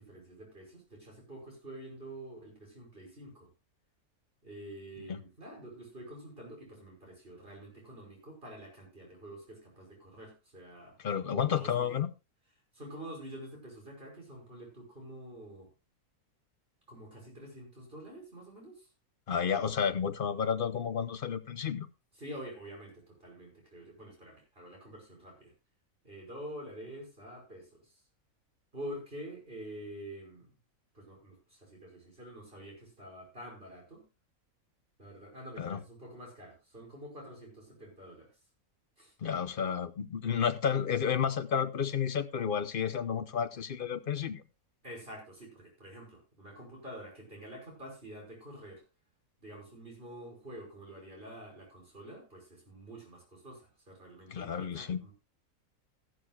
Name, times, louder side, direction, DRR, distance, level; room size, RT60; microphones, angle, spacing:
voice 1, 0.0-3.5 4.4-12.0 12.7-15.7 16.9-18.9 22.2-25.5 26.0-27.9 28.7-30.5 30.9-34.0 35.0-38.3 39.0-39.1 44.8-48.8 49.4-55.1, right 1 dB, 40° right, 5.8 m, -47 dB
voice 2, 11.0-12.1 19.3-21.9 35.6-35.8 39.2-44.4 54.3-55.0, left 7 dB, 45° left, 0.8 m, -31 dB
14.5 x 12.5 x 2.4 m
omnidirectional pair, 1.5 m